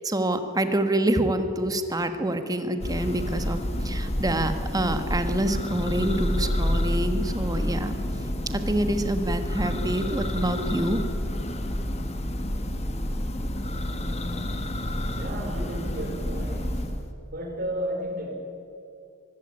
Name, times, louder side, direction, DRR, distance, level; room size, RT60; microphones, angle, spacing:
voice 1, 0.0-8.0 8.2-11.0 15.6-15.7, right 1 dB, 20° right, 8 dB, 1.5 m, -27 dB
Church bell, 2.8-17.1, equal, 30° left, 1.4 m, -29 dB
voice 2, 14.9-16.8 17.2-18.3, equal, 45° right, 2 dB, 5.0 m, -33 dB
23.5 x 16.0 x 9.7 m, 2.6 s
head